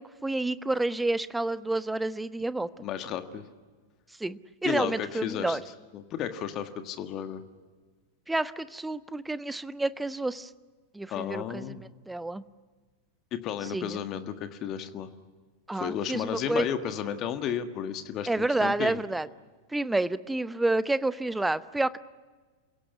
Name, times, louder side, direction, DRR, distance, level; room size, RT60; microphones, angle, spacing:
voice 1, 0.0-2.7 4.2-5.6 8.3-10.5 10.9-11.8 12.1-12.4 13.7-14.0 15.7-16.7 18.3-19.3 19.7-22.0, right 2 dB, 5° right, 17 dB, 0.8 m, -29 dB
voice 2, 2.8-3.4 4.6-5.6 5.9-7.4 11.1-11.8 13.3-15.1 15.7-19.0, left 9 dB, 35° left, 9 dB, 1.6 m, -33 dB
28.5 x 17.0 x 9.8 m, 1.4 s
figure-of-eight pair, 90°, 0 cm